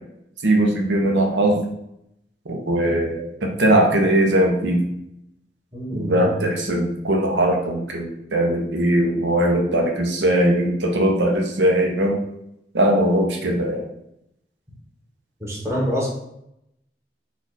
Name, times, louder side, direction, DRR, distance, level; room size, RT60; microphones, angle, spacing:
voice 1, 0.4-1.6 2.5-4.8 5.9-12.2 12.7-13.8, right 1 dB, 85° right, 1 dB, 0.7 m, -20 dB
voice 2, 5.7-6.3 15.4-16.1, equal, 15° right, -4 dB, 1.0 m, -26 dB
4.2 x 2.4 x 4.0 m, 0.80 s
head